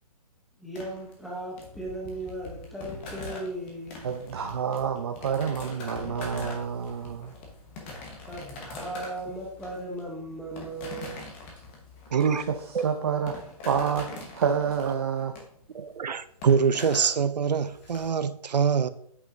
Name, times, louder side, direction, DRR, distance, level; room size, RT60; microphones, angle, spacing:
voice 1, 0.6-4.0 8.3-11.2, right 1 dB, ahead, 0.6 m, -37 dB
sound 1, 0.7-18.1, left 2 dB, 20° left, 1.0 m, -43 dB
voice 2, 4.0-7.3 12.1-14.1 14.4-15.4, right 7 dB, 40° right, 0.6 m, -28 dB
voice 3, 12.1-12.4 12.7-12.9 15.7-18.9, right 6 dB, 85° right, 0.6 m, -25 dB
8.2 x 5.9 x 2.5 m
hypercardioid pair, 165°, 21 cm